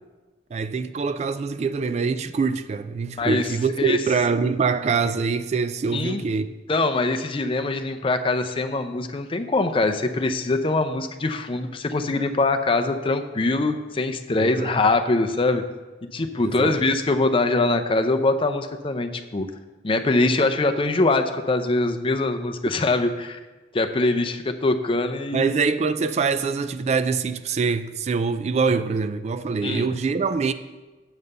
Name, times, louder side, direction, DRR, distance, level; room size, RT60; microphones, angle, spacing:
voice 1, 0.5-6.5 14.4-14.8 16.4-16.8 25.3-30.5, right 5 dB, 40° right, 0.3 m, -24 dB
voice 2, 3.2-3.5 3.8-4.0 5.9-6.2 6.7-15.6 16.1-19.5 19.8-23.4 23.7-25.5 29.6-29.9, left 2 dB, 30° left, 0.5 m, -23 dB
8.0 x 5.5 x 6.6 m
head